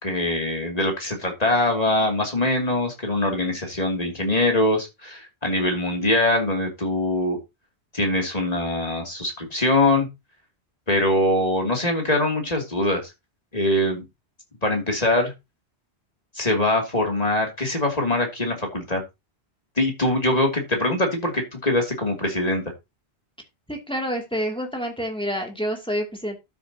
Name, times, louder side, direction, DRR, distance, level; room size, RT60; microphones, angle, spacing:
voice 1, 0.0-7.4 7.9-10.1 10.9-13.1 13.5-14.0 14.6-15.3 16.3-19.0 19.8-22.6, left 1 dB, 35° left, 2 dB, 2.8 m, -23 dB
voice 2, 23.7-26.4, equal, 5° left, 2 dB, 2.5 m, -28 dB
12.5 x 7.3 x 2.8 m, 0.23 s
omnidirectional pair, 1.2 m